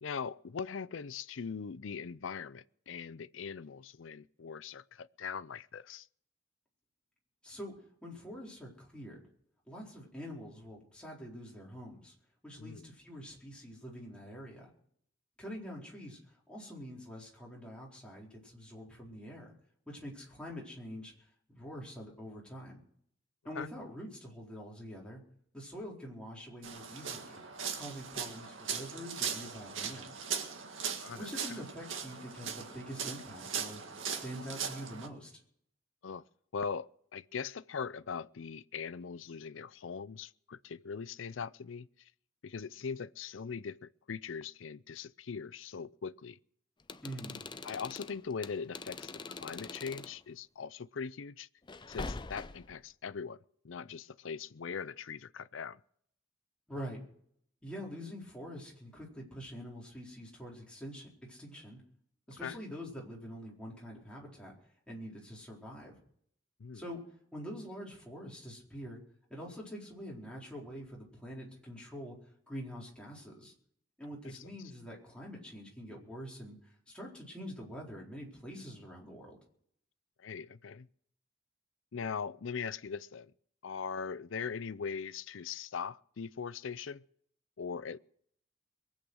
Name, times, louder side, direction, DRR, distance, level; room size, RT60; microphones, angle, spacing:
voice 1, 0.0-6.1 12.6-12.9 23.6-23.7 31.0-31.3 36.0-36.2 36.5-42.1 42.4-46.4 47.6-51.5 51.9-55.8 62.4-62.6 66.6-66.8 74.2-74.5 80.2-80.9 81.9-83.3 83.6-87.0 87.6-88.0, left 6 dB, 75° left, 0.5 m, -41 dB
voice 2, 8.0-9.2 9.7-12.1 12.4-14.7 15.4-16.2 16.5-19.5 19.9-21.1 21.5-22.8 23.4-25.2 25.5-27.4 27.7-30.1 31.1-35.3 47.0-47.4 56.7-57.0 57.6-61.8 62.3-64.5 64.9-65.9 66.7-67.0 67.3-69.0 69.3-72.2 72.5-73.5 74.0-79.4, equal, 5° left, 4.3 m, -45 dB
sound 1, 26.6-35.1, right 7 dB, 80° right, 1.9 m, -39 dB
sound 2, 46.8-50.2 51.7-52.8, left 3 dB, 25° left, 0.5 m, -43 dB
22.5 x 8.5 x 6.4 m
head